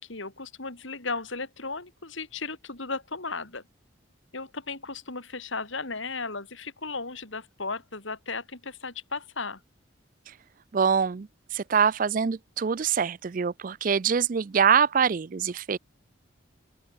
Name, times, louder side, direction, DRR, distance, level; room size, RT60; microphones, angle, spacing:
voice 1, 0.0-3.6 4.3-9.6, left 4 dB, 70° left, 3.7 m, -35 dB
voice 2, 10.7-11.3 11.5-15.8, right 7 dB, 40° right, 0.4 m, -24 dB
open air
head